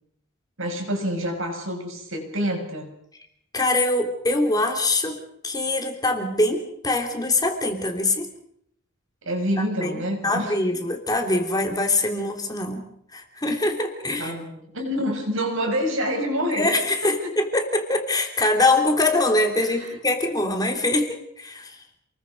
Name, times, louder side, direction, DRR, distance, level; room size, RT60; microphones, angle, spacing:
voice 1, 0.6-2.9 9.2-10.6 14.2-16.8 17.0-17.3 19.6-20.0, equal, 65° right, 3 dB, 6.9 m, -27 dB
voice 2, 3.5-5.2 5.4-8.3 9.6-12.9 13.1-14.3 16.5-21.8, left 2 dB, 20° left, 3 dB, 3.1 m, -23 dB
28.0 x 21.5 x 5.3 m, 0.70 s
head